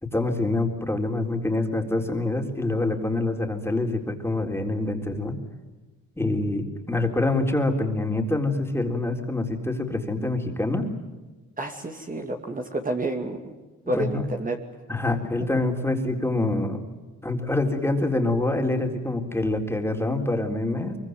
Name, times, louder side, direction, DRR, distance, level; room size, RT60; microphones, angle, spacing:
voice 1, 0.0-5.4 6.2-10.9 13.9-14.2 14.9-16.8 17.2-21.0, left 2 dB, 10° left, 3 dB, 3.9 m, -26 dB
voice 2, 11.6-13.5 13.9-14.6, right 1 dB, 25° right, 3 dB, 2.6 m, -29 dB
23.5 x 23.5 x 9.5 m, 1.2 s
cardioid pair, 90°, 30 cm